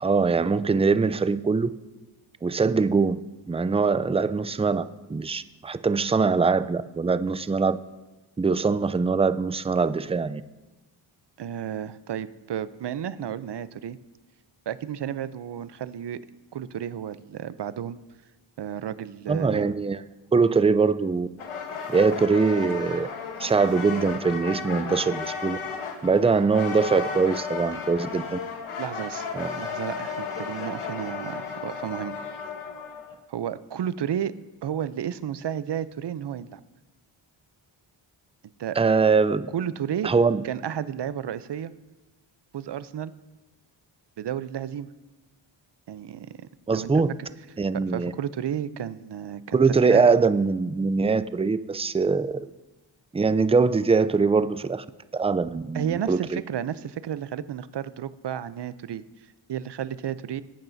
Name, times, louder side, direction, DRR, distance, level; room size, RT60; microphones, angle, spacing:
voice 1, 0.0-1.7 2.4-3.2 3.5-4.8 5.1-7.8 8.4-10.4 19.3-20.0 20.3-21.3 21.9-23.1 23.4-25.6 26.0-28.4 29.3-29.6 38.8-39.5 40.0-40.4 46.7-47.1 47.6-48.1 49.5-52.4 53.1-54.8 55.1-56.4, right 4 dB, 15° right, 13 dB, 0.4 m, -22 dB
voice 2, 11.4-14.0 14.7-16.2 16.5-18.0 18.6-19.7 28.8-29.3 29.6-32.2 33.3-34.3 34.6-36.6 38.6-38.8 39.5-40.1 40.4-41.7 42.5-43.1 44.2-44.9 45.9-46.9 47.7-49.6 49.9-50.1 55.7-59.0 59.5-60.4, right 9 dB, 60° right, 15 dB, 0.6 m, -32 dB
sound 1, 21.4-33.1, left 5 dB, 85° left, 1.3 m, -34 dB
19.0 x 8.9 x 2.7 m, 1.1 s
cardioid pair, 50°, 48 cm